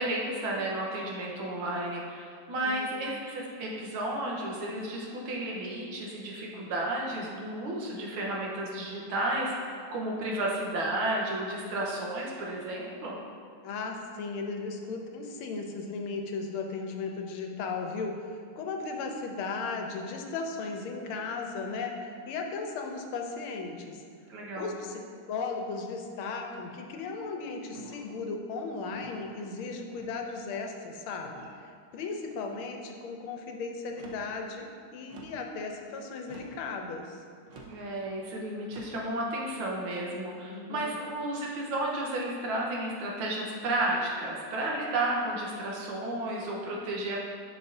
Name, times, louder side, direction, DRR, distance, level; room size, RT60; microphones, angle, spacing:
voice 1, 0.0-13.2 24.3-24.7 37.6-47.2, right 1 dB, 75° right, -3 dB, 1.9 m, -32 dB
voice 2, 13.6-24.0 24.6-34.7 34.9-37.2 40.5-40.9, left 4 dB, 85° left, 3 dB, 1.5 m, -36 dB
sound 1, 27.7-28.2 28.9-29.3 30.0-30.5 31.2-31.6 32.3-32.7 33.8-34.3 35.1-35.5 36.2-36.7 37.5-37.8 38.7-39.1, right 1 dB, 60° right, 0.8 m, -48 dB
10.5 x 5.4 x 2.6 m, 2.2 s
omnidirectional pair, 2.3 m